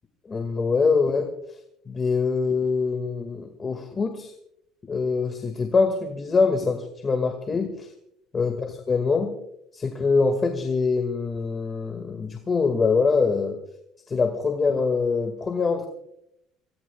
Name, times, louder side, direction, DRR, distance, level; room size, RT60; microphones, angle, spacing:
voice 1, 0.3-1.3 1.9-4.3 4.9-7.9 8.3-9.3 9.7-13.6 14.1-15.9, left 4 dB, 25° left, 4 dB, 1.9 m, -24 dB
28.5 x 18.0 x 2.3 m, 0.76 s
cardioid pair, 145°, 0 cm